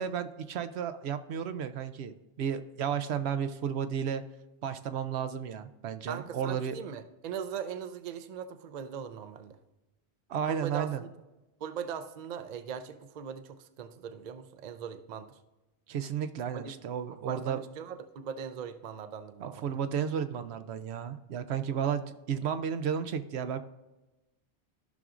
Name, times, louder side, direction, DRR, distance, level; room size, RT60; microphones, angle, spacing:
voice 1, 0.0-4.2 4.6-6.8 10.3-11.0 15.9-17.6 19.4-23.6, right 8 dB, 75° right, 10 dB, 0.8 m, -33 dB
voice 2, 6.1-9.6 10.5-11.1 11.6-15.3 16.5-16.7 17.2-19.7, right 7 dB, 50° right, 9 dB, 0.6 m, -40 dB
14.5 x 6.0 x 2.5 m, 1.0 s
omnidirectional pair, 1.1 m